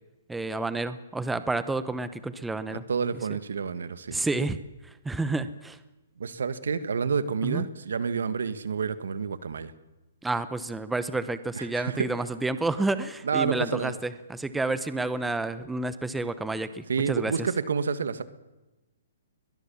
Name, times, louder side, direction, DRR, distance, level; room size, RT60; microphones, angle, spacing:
voice 1, 0.3-2.8 4.1-4.6 4.8-5.8 7.4-7.6 10.2-17.5, right 2 dB, 5° right, 13 dB, 0.8 m, -30 dB
voice 2, 2.9-4.2 6.2-9.7 11.5-12.1 13.2-13.9 16.9-18.2, right 5 dB, 80° right, 14 dB, 1.6 m, -29 dB
22.0 x 19.5 x 7.1 m, 1.1 s
hypercardioid pair, 160°, 0 cm